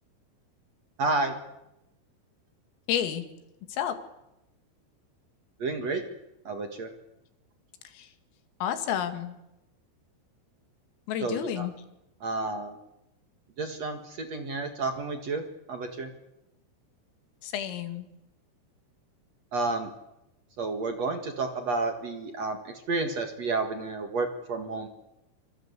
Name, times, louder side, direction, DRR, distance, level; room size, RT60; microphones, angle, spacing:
voice 1, 1.0-1.4 5.6-6.0 6.5-6.9 11.2-11.7 12.2-12.7 13.6-16.1 19.5-19.9 20.6-22.6 22.9-24.9, right 3 dB, 55° right, 6 dB, 1.9 m, -30 dB
voice 2, 2.9-3.2 3.7-4.0 7.8-8.1 8.6-9.4 11.1-11.7 17.4-18.1, left 10 dB, 80° left, 8 dB, 4.8 m, -30 dB
27.0 x 25.0 x 8.3 m, 0.90 s
omnidirectional pair, 5.9 m